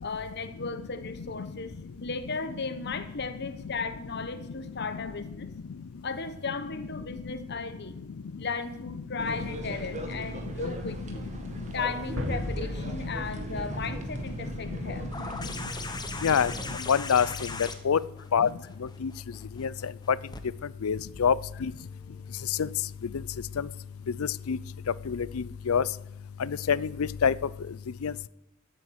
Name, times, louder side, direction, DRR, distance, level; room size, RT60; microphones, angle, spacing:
voice 1, 0.0-5.5 6.0-8.0 8.4-11.2 11.7-15.1, left 4 dB, 55° left, 10 dB, 1.2 m, -36 dB
sound 1, 9.2-16.7, right 1 dB, 35° right, 2.0 m, -38 dB
sound 2, 12.2-15.0, equal, 85° right, 2.6 m, -37 dB
sound 3, 15.1-20.4 21.8-21.9, left 4 dB, 20° left, 1.1 m, -39 dB
voice 2, 16.9-17.3 17.8-18.0 18.3-18.5 19.0-19.1 19.6-19.7 20.8-21.3 21.6-21.7 22.6-22.7 24.5-24.6 25.1-25.3 25.7-25.8 26.7-26.9 27.2-27.3 28.0-28.3, left 7 dB, 85° left, 20 dB, 0.5 m, -23 dB
13.5 x 8.6 x 8.0 m, 0.83 s
head